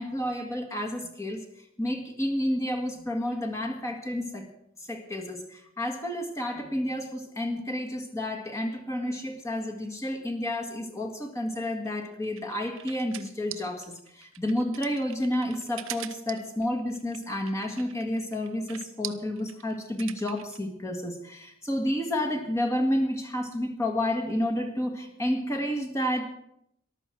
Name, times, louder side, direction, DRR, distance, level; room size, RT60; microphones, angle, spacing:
voice 1, 0.0-4.5 4.8-26.3, left 1 dB, 15° left, 2 dB, 1.7 m, -30 dB
sound 1, 11.9-20.6, right 13 dB, 75° right, 0.8 m, -42 dB
14.0 x 12.0 x 6.0 m, 0.75 s
head